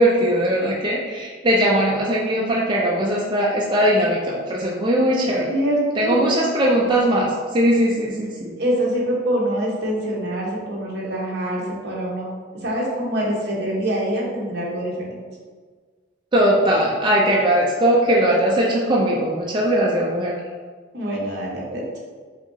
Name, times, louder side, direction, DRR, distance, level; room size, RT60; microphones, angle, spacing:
voice 1, 0.0-5.5 6.0-8.5 16.3-20.4, right 1 dB, 25° right, -4 dB, 0.4 m, -19 dB
voice 2, 5.5-6.3 8.6-12.3 12.6-15.2 20.9-22.0, right 1 dB, 55° right, -4 dB, 1.0 m, -25 dB
5.0 x 2.8 x 2.7 m, 1.5 s
head